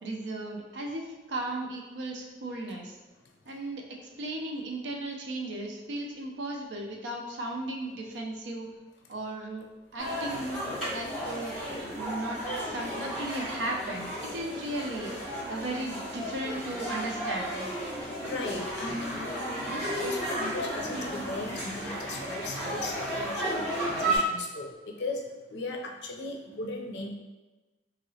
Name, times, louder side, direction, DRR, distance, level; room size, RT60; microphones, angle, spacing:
voice 1, 0.0-3.0 3.5-8.7 9.1-9.7 9.9-10.6 10.9-11.6 11.9-15.1 15.5-17.7, right 1 dB, 90° right, 0 dB, 0.5 m, -36 dB
sound 1, 10.0-24.2, right 1 dB, 5° right, 1.5 m, -34 dB
voice 2, 18.2-27.1, left 2 dB, 75° left, 1 dB, 0.5 m, -37 dB
2.9 x 2.9 x 2.7 m, 1.2 s
head